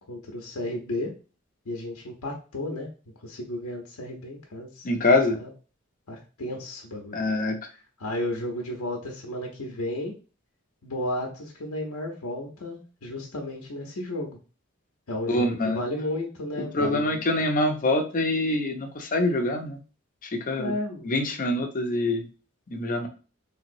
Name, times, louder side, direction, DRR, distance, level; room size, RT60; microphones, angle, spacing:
voice 1, 0.1-1.1 1.7-2.9 3.2-4.9 5.3-5.5 6.1-7.2 8.0-10.1 10.8-14.4 15.1-17.1 20.6-21.1, left 1 dB, 85° left, 1 dB, 0.7 m, -33 dB
voice 2, 4.8-5.4 7.1-7.5 15.3-15.8 16.6-19.8 20.3-20.7 21.1-22.2 22.7-23.1, left 2 dB, 40° left, 4 dB, 0.5 m, -25 dB
3.4 x 3.0 x 2.6 m, 0.36 s
head